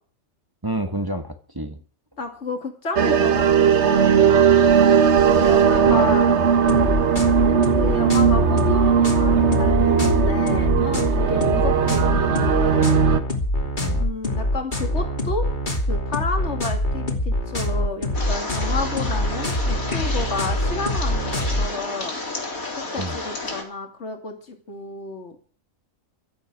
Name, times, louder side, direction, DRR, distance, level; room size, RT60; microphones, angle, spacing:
voice 1, 0.6-1.8 5.1-6.8 11.6-11.8 13.8-14.1 23.0-23.2, right 1 dB, 15° right, 7 dB, 1.3 m, -30 dB
voice 2, 2.2-4.5 5.2-6.3 7.7-13.0 14.0-15.5 15.9-22.2 22.9-25.4, left 3 dB, 55° left, 4 dB, 2.9 m, -31 dB
sound 1, 3.0-13.2, right 7 dB, 55° right, 1.3 m, -18 dB
sound 2, 6.7-21.7, left 1 dB, 35° left, 2.9 m, -24 dB
sound 3, 18.1-23.6, left 2 dB, 85° left, 4.0 m, -31 dB
16.5 x 12.5 x 6.3 m, 0.43 s
omnidirectional pair, 1.4 m